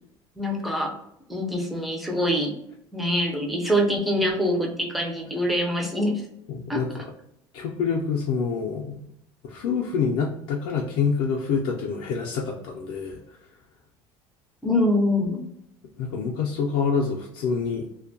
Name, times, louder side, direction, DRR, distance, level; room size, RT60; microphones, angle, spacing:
voice 1, 0.4-1.0 1.3-2.6 2.9-6.2 6.7-6.8 14.6-15.5, left 1 dB, ahead, -1 dB, 0.3 m, -24 dB
voice 2, 6.5-7.1 7.5-9.0 9.4-13.2 16.0-17.9, left 5 dB, 70° left, -2 dB, 0.4 m, -26 dB
2.5 x 2.2 x 2.5 m, 0.76 s
cardioid pair, 175°, 10 cm